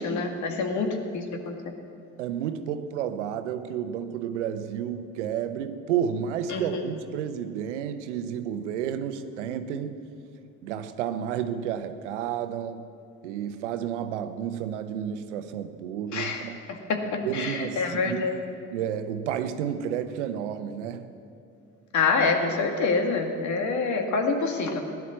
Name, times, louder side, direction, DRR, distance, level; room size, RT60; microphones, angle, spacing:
voice 1, 0.0-1.5 6.5-6.8 16.1-16.4 16.7-18.4 21.9-24.8, left 4 dB, 55° left, 4 dB, 2.1 m, -26 dB
voice 2, 2.2-10.0 10.6-12.9 13.2-16.7 17.2-18.4 18.7-21.1, right 9 dB, 80° right, 10 dB, 0.9 m, -31 dB
16.5 x 11.0 x 7.5 m, 2.5 s
hypercardioid pair, 60°, 35 cm